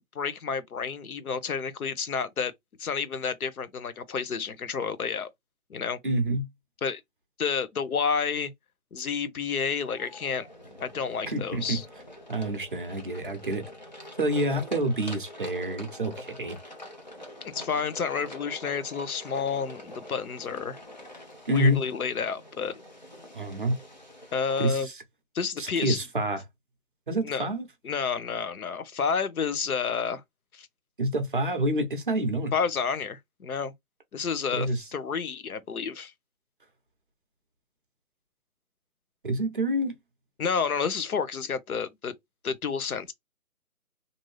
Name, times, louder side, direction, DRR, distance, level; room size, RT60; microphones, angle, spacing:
voice 1, 0.0-2.5 2.8-5.3 5.7-6.0 6.8-7.0 7.4-8.5 8.9-10.5 10.8-11.9 17.4-20.8 21.5-22.8 24.3-24.9 25.3-26.0 27.2-27.5 27.8-30.2 30.5-30.7 32.5-33.7 34.1-36.1 40.4-42.1 42.4-43.1, left 6 dB, 90° left, 0.8 m, -30 dB
voice 2, 6.0-6.5 11.3-11.8 12.3-13.6 14.2-16.6 21.5-21.8 23.3-23.7 24.6-25.0 25.6-26.4 27.1-27.7 31.0-32.5 34.5-34.8 39.2-39.9, right 1 dB, 40° right, 0.6 m, -27 dB
sound 1, 9.8-24.8, left 1 dB, 35° left, 0.5 m, -45 dB
2.6 x 2.6 x 3.1 m
hypercardioid pair, 165°, 42 cm